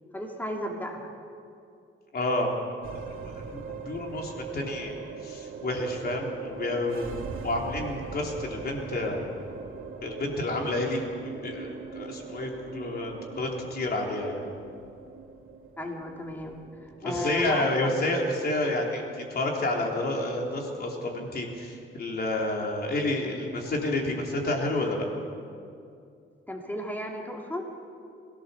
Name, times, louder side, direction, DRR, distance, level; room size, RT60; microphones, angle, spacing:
voice 1, 0.1-1.1 15.8-17.9 26.5-27.6, left 1 dB, 10° left, 0 dB, 2.7 m, -34 dB
voice 2, 2.1-2.6 3.2-9.3 10.0-14.4 17.0-25.1, left 2 dB, 50° left, 0 dB, 3.7 m, -30 dB
sound 1, 2.8-21.3, right 5 dB, 85° right, 2.3 m, -41 dB
23.0 x 17.0 x 7.0 m, 2.4 s
wide cardioid pair, 130°, 21 cm